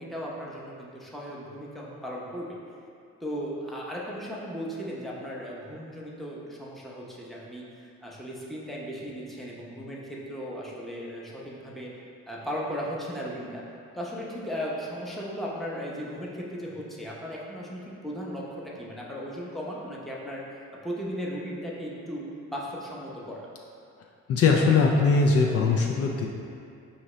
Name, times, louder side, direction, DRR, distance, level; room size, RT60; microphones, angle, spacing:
voice 1, 0.0-2.6 3.2-7.6 8.0-11.9 12.3-13.6 13.9-22.2 22.5-23.5, equal, ahead, -5 dB, 0.7 m, -36 dB
voice 2, 24.3-26.3, left 4 dB, 50° left, -1 dB, 0.4 m, -21 dB
4.9 x 2.8 x 3.1 m, 2.4 s
cardioid pair, 90°, 30 cm